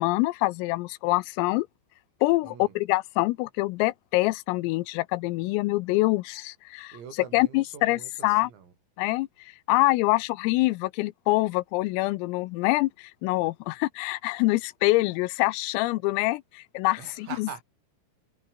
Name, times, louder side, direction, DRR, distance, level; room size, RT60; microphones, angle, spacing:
voice 1, 0.0-1.7 2.2-6.9 7.3-8.5 9.0-9.3 9.7-17.5, left 21 dB, 90° left, 3.4 m, -25 dB
voice 2, 2.4-2.8 6.9-8.7 10.0-10.1 17.0-17.6, right 7 dB, 85° right, 7.7 m, -43 dB
omnidirectional pair, 6.0 m